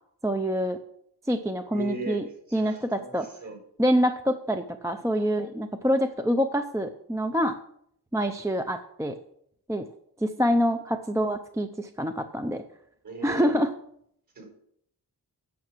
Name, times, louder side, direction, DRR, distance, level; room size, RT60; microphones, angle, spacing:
voice 1, 0.2-0.8 1.3-2.2 2.5-3.3 3.8-7.6 8.1-9.1 9.7-9.8 10.2-12.6 13.2-13.7, equal, 10° right, 6 dB, 0.5 m, -26 dB
voice 2, 1.7-3.1 3.4-3.6 13.0-13.6 14.4-14.5, right 3 dB, 60° right, 2 dB, 4.1 m, -37 dB
9.5 x 5.8 x 6.1 m, 0.70 s
wide cardioid pair, 120°, 40 cm